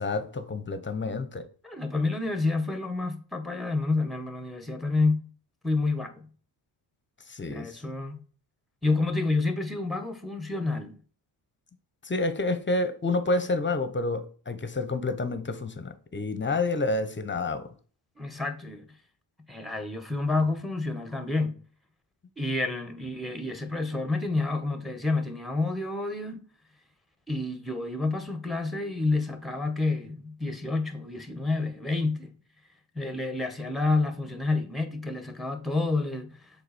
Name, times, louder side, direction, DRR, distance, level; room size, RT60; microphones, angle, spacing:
voice 1, 0.0-1.5 7.3-7.8 12.0-17.7, left 2 dB, 20° left, 1.0 m, -29 dB
voice 2, 1.6-5.2 5.6-6.3 7.5-8.2 8.8-11.0 18.2-18.9 19.5-21.6 22.4-26.4 27.3-32.3 32.9-36.4, left 3 dB, ahead, 1.3 m, -29 dB
6.7 x 4.2 x 4.3 m
cardioid pair, 75°, 50 cm